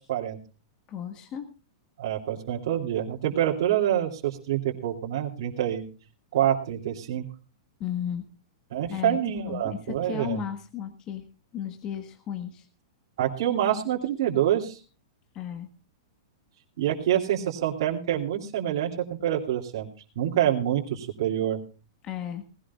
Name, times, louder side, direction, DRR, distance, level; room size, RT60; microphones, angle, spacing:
voice 1, 0.9-1.5 7.8-8.3 8.9-9.2 9.5-11.2 11.5-12.7 15.3-15.7 22.0-22.4, left 9 dB, 25° left, 8 dB, 1.3 m, -34 dB
voice 2, 2.0-5.8 6.3-7.2 8.7-10.4 13.2-14.8 16.8-18.9 19.2-19.9 20.2-21.6, right 11 dB, 60° right, -2 dB, 2.8 m, -26 dB
19.0 x 17.0 x 2.4 m, 0.34 s
supercardioid pair, 165°, 3 cm